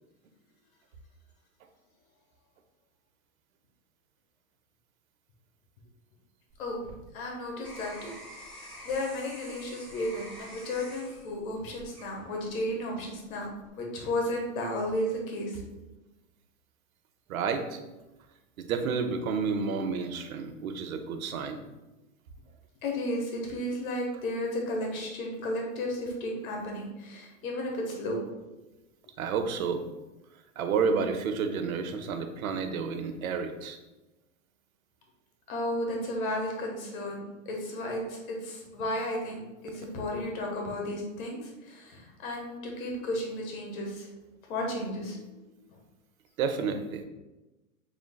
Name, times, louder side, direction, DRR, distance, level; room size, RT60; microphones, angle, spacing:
sound 1, 6.5-12.7 13.2-13.7, equal, ahead, 1.2 m, -48 dB
voice 1, 7.1-8.1 8.5-13.5 13.7-15.6 22.8-28.2 35.5-44.1 44.5-45.2, left 1 dB, 85° left, 0 dB, 1.4 m, -33 dB
voice 2, 17.3-17.8 18.6-21.6 29.2-29.9 30.6-33.8 46.4-47.0, right 5 dB, 85° right, 6 dB, 0.7 m, -30 dB
6.1 x 3.3 x 2.3 m, 1.1 s
hypercardioid pair, 125°, 41 cm